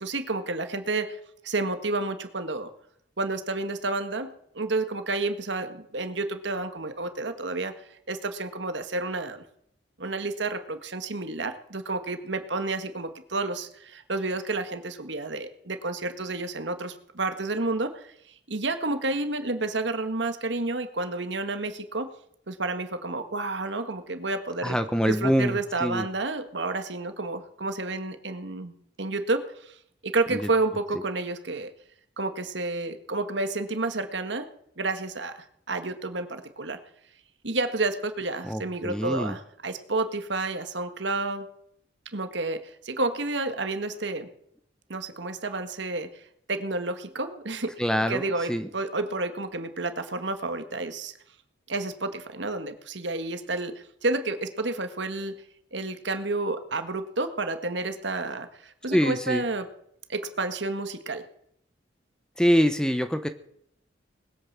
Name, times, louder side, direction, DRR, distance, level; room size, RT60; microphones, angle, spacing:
voice 1, 0.0-2.7 3.2-9.4 10.0-22.1 22.5-24.8 25.1-28.7 29.0-31.7 32.2-34.5 34.8-36.8 37.4-41.5 42.1-44.3 44.9-47.7 48.1-51.1 51.7-55.3 55.7-59.7 60.1-61.2, right 2 dB, 70° right, 8 dB, 1.7 m, -30 dB
voice 2, 24.6-26.0 30.3-30.4 38.5-39.3 47.8-48.2 48.5-48.7 58.9-59.4 62.4-63.3, equal, 5° left, 9 dB, 0.9 m, -24 dB
20.0 x 9.0 x 7.5 m, 0.69 s
head